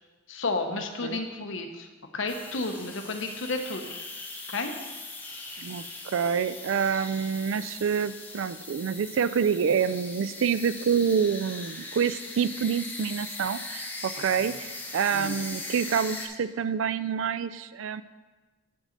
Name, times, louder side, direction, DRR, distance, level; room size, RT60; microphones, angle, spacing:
voice 1, 0.3-1.9 2.1-4.0 4.5-4.7 14.4-14.5 15.1-15.4, left 3 dB, 80° left, 5 dB, 0.9 m, -32 dB
sound 1, 2.3-16.3, left 2 dB, 10° left, 0.7 m, -40 dB
voice 2, 5.6-18.0, right 7 dB, 85° right, 14 dB, 0.3 m, -27 dB
9.5 x 3.9 x 6.5 m, 1.3 s
head